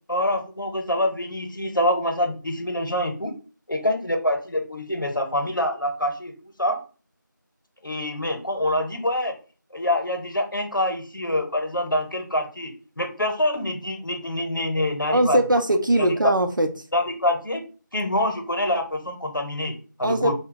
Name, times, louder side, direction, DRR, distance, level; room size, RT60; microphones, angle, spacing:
voice 1, 0.1-3.3 3.7-6.3 6.6-6.8 7.8-9.3 9.7-15.4 16.0-16.1 16.9-17.6 17.9-20.3, left 1 dB, 80° left, 5 dB, 0.8 m, -25 dB
voice 2, 15.1-16.7 20.0-20.3, right 1 dB, 75° right, 6 dB, 0.6 m, -20 dB
3.4 x 2.2 x 3.7 m, 0.36 s
figure-of-eight pair, 180°, 11 cm